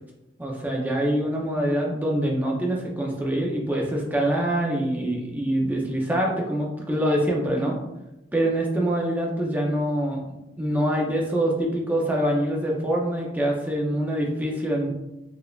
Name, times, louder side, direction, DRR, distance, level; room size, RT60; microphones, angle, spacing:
voice 1, 0.4-7.7 8.3-14.9, right 1 dB, 10° right, -1 dB, 0.5 m, -25 dB
3.7 x 2.4 x 2.3 m, 0.93 s
head